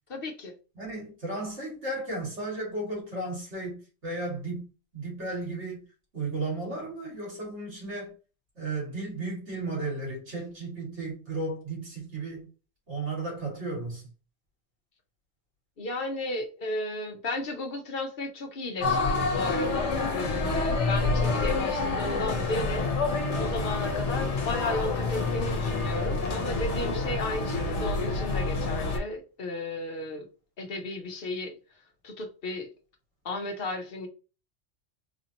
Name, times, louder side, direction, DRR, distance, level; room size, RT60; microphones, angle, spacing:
voice 1, 0.1-0.5 15.8-22.9 23.4-30.3 30.6-31.5 32.0-32.7 33.2-34.1, left 2 dB, 55° left, 1.0 m, -34 dB
voice 2, 0.8-4.7 4.9-5.9 6.1-8.1 8.6-12.5 12.9-14.0, right 2 dB, 80° right, 2.4 m, -34 dB
sound 1, 18.8-29.0, left 3 dB, 85° left, 1.2 m, -28 dB
4.2 x 2.8 x 2.8 m
omnidirectional pair, 1.2 m